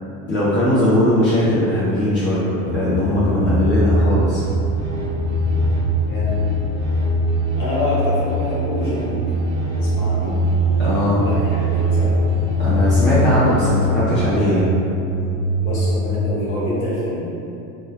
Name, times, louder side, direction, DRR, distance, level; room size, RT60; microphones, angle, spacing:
voice 1, 0.3-4.4 10.8-11.2 12.6-14.7, left 1 dB, 30° left, -10 dB, 0.6 m, -19 dB
sound 1, 2.6-16.1, equal, 25° right, 0.5 m, -21 dB
sound 2, 4.3-13.8, right 2 dB, 65° right, 1.0 m, -34 dB
voice 2, 6.1-6.4 7.6-9.2 9.8-10.4 11.1-12.2 15.6-17.3, equal, 85° left, -7 dB, 1.3 m, -26 dB
2.9 x 2.2 x 3.4 m, 2.8 s
supercardioid pair, 125°, 41 cm